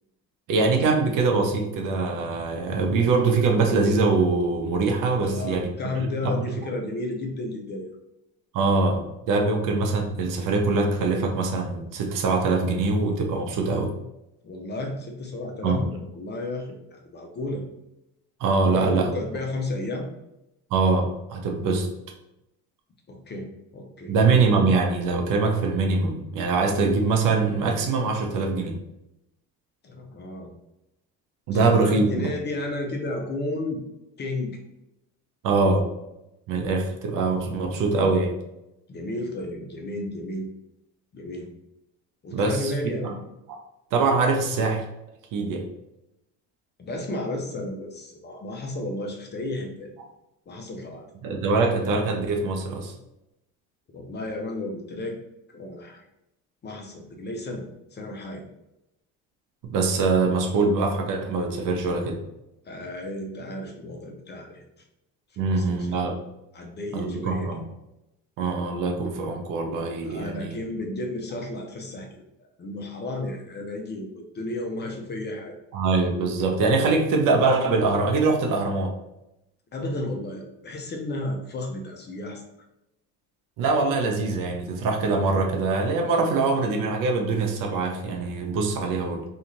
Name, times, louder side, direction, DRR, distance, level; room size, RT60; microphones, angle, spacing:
voice 1, 0.5-5.7 5.9-6.5 8.5-9.0 9.3-13.9 15.6-15.9 18.4-19.1 20.7-21.9 24.1-28.8 31.5-32.1 35.4-35.9 36.5-38.3 42.3-42.7 43.0-43.1 43.5-43.6 43.9-44.8 45.3-45.7 51.2-52.9 59.7-62.2 65.4-66.2 66.9-67.6 68.4-70.6 75.7-78.9 83.6-89.2, right 3 dB, 65° right, 2 dB, 0.7 m, -23 dB
voice 2, 5.2-7.9 14.4-17.6 18.6-20.1 23.1-24.1 29.8-30.5 31.5-33.8 34.2-34.5 38.9-40.5 41.1-41.5 42.2-43.1 46.8-49.9 50.5-51.1 53.9-55.2 55.5-56.0 56.6-57.7 57.9-58.4 62.6-64.6 65.3-66.1 66.5-67.6 70.0-72.2 72.6-75.6 79.7-82.4, left 2 dB, 30° left, 1 dB, 0.5 m, -33 dB
2.6 x 2.4 x 2.9 m, 0.89 s
cardioid pair, 105°, 35 cm